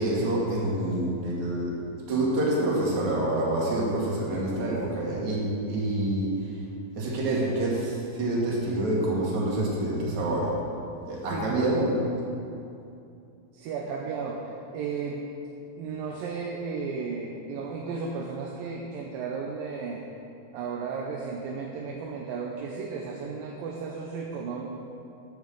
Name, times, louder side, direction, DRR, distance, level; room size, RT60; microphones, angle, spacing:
voice 1, 0.0-1.7 2.1-6.3 7.0-10.5 11.1-11.9, right 1 dB, 50° right, -4 dB, 3.5 m, -27 dB
voice 2, 11.3-11.8 13.5-15.3 15.8-20.0 20.5-24.7, right 5 dB, 75° right, -1 dB, 2.5 m, -34 dB
10.0 x 9.5 x 6.9 m, 2.7 s
omnidirectional pair, 4.4 m